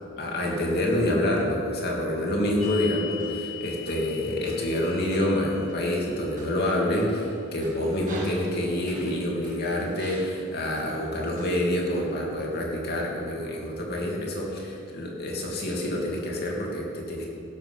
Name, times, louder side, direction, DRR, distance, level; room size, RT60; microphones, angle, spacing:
voice 1, 0.2-17.3, left 1 dB, 50° left, -2 dB, 2.7 m, -27 dB
sound 1, 2.6-9.6 10.0-10.8 11.4-12.1, left 5 dB, 40° right, 2.4 m, -42 dB
18.0 x 7.9 x 6.0 m, 2.7 s
head